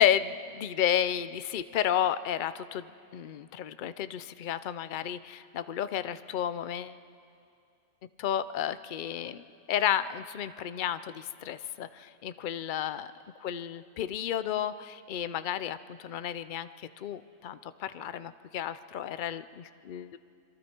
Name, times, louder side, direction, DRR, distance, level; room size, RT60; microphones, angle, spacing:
voice 1, 0.0-2.8 3.1-7.0 8.2-13.1 13.4-20.2, left 10 dB, 55° left, 14 dB, 0.5 m, -32 dB
26.5 x 22.5 x 4.5 m, 2.5 s
omnidirectional pair, 1.4 m